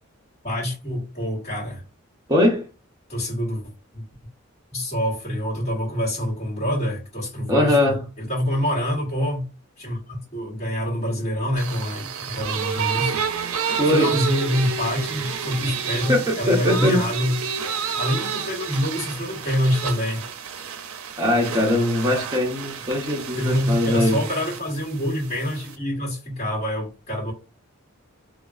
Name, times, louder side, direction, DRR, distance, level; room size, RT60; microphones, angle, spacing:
voice 1, 0.4-1.8 3.1-4.0 4.7-9.4 9.8-13.2 13.9-17.4 17.9-20.2 23.4-27.3, equal, 30° left, 1.3 m, -26 dB
voice 2, 2.3-2.6 7.5-8.0 13.8-14.1 16.1-17.0 21.2-24.2, left 1 dB, 15° right, 0.7 m, -21 dB
sound 1, 11.6-25.8, right 7 dB, 85° right, 0.5 m, -30 dB
3.2 x 2.3 x 2.4 m
head